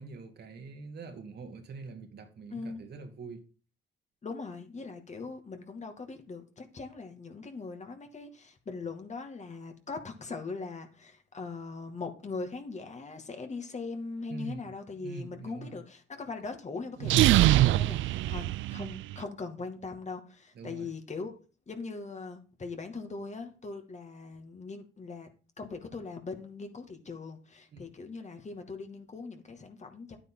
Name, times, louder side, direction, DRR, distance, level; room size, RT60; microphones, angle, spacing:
voice 1, 0.0-3.4 14.3-14.6 15.0-15.7 20.5-20.9 27.7-27.8, right 4 dB, 55° right, 2.4 m, -44 dB
voice 2, 2.5-2.9 4.2-21.3 21.7-25.3 25.6-30.2, left 4 dB, 35° left, 2.3 m, -40 dB
sound 1, 17.0-19.1, right 15 dB, 75° right, 0.4 m, -23 dB
10.0 x 9.3 x 3.9 m
cardioid pair, 90°, 20 cm